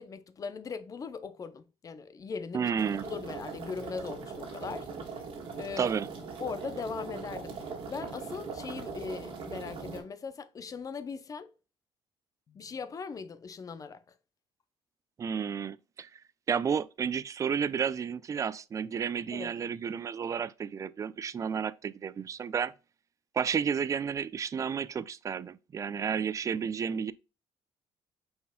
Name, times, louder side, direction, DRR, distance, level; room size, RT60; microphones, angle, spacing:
voice 1, 0.0-2.7 3.0-4.9 5.6-5.9 6.4-7.6 7.9-11.5 12.5-14.0 19.3-19.5, left 5 dB, 35° left, 0.5 m, -39 dB
voice 2, 2.5-3.0 5.8-6.1 15.2-16.2 16.5-22.7 23.3-27.1, right 7 dB, 30° right, 0.3 m, -31 dB
Household - Kitchen - Water Boiling, 2.8-10.0, right 5 dB, 55° right, 1.6 m, -40 dB
5.5 x 4.3 x 2.2 m
cardioid pair, 95°, 10 cm